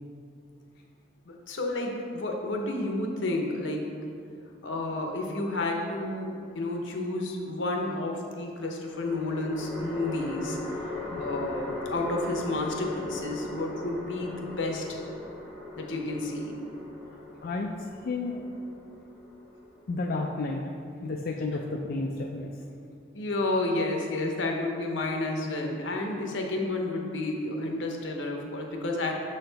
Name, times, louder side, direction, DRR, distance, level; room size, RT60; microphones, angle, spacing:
voice 1, 1.2-3.8 4.6-15.0 15.8-16.6 23.1-29.1, left 2 dB, 85° left, 1 dB, 0.8 m, -31 dB
sound 1, 5.7-6.6 8.9-20.2, left 2 dB, 5° left, 1.1 m, -39 dB
voice 2, 17.1-17.7 18.0-18.4 19.9-20.6 21.0-22.5, left 3 dB, 55° left, 1 dB, 0.4 m, -32 dB
6.5 x 4.3 x 3.9 m, 2.4 s
head